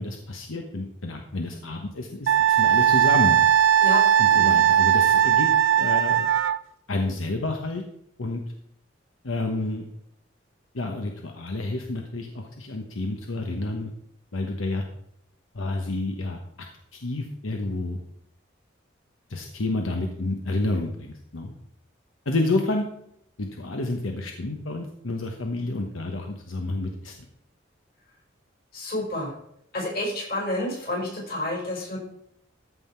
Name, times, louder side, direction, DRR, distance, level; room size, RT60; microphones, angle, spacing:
voice 1, 0.0-3.4 4.2-5.5 5.8-6.3 6.9-7.8 8.2-8.4 9.2-9.9 10.7-13.9 14.3-14.8 15.5-16.4 16.9-18.0 19.3-21.5 22.2-22.9 23.4-27.1, left 2 dB, 85° left, 3 dB, 1.1 m, -29 dB
Wind instrument woodwind instrument, 2.3-6.6, right 9 dB, 75° right, 0.5 m, -19 dB
voice 2, 28.7-29.3 29.7-32.0, left 1 dB, 50° left, -1 dB, 4.8 m, -29 dB
14.0 x 5.7 x 4.5 m, 0.74 s
head